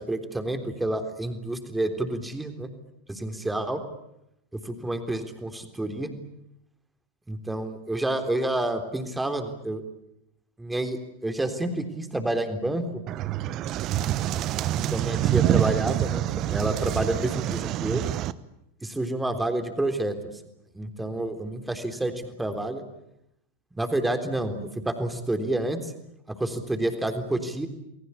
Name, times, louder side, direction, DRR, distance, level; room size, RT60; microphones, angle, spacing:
voice 1, 0.0-2.7 3.1-3.8 4.5-6.1 7.3-9.8 10.6-13.0 14.8-18.0 18.8-20.3 20.7-22.8 23.8-24.6 24.8-25.9 26.3-27.7, right 1 dB, 5° right, 7 dB, 3.6 m, -29 dB
sound 1, 13.1-18.3, right 13 dB, 35° right, 1.0 m, -26 dB
30.0 x 21.5 x 8.5 m, 0.83 s
figure-of-eight pair, 90°, 0 cm